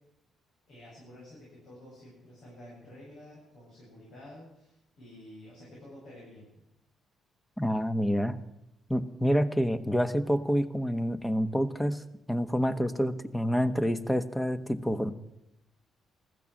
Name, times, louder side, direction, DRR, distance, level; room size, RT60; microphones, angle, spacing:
voice 1, 0.7-6.5, left 1 dB, 80° left, -5 dB, 7.7 m, -50 dB
voice 2, 7.6-8.3 8.9-12.0 12.3-15.1, equal, 10° left, 12 dB, 1.1 m, -28 dB
15.0 x 14.0 x 6.3 m, 0.87 s
cardioid pair, 90°, 0 cm